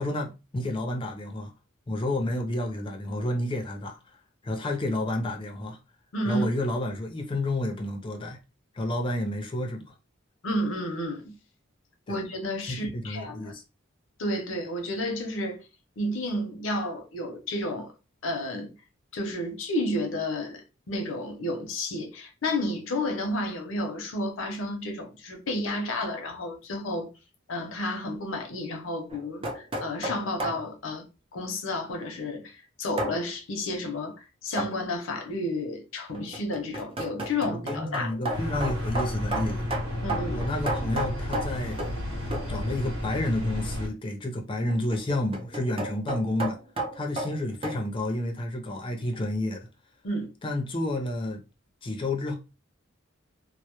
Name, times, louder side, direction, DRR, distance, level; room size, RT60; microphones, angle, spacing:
voice 1, 0.0-1.5 1.9-4.1 4.4-5.8 6.3-8.4 8.7-9.9 12.1-12.2 12.7-13.6 37.5-39.7 40.3-41.8 42.5-46.6 46.9-49.7 50.4-51.4 51.8-52.3, left 1 dB, 25° left, 0.5 m, -30 dB
voice 2, 6.1-6.5 10.4-11.3 12.1-13.5 14.2-15.6 16.0-17.9 18.2-18.7 19.1-27.1 27.5-31.0 31.3-34.2 34.4-38.1 40.0-40.4 50.0-50.3, left 1 dB, 85° left, 0.6 m, -31 dB
sound 1, 29.1-30.7 33.0-33.2 34.6-34.8 36.1-42.0 42.3-42.6 44.7-47.8, right 1 dB, 30° right, 0.4 m, -33 dB
sound 2, 38.3-43.9, left 1 dB, 85° right, 0.9 m, -32 dB
2.1 x 2.0 x 2.8 m
head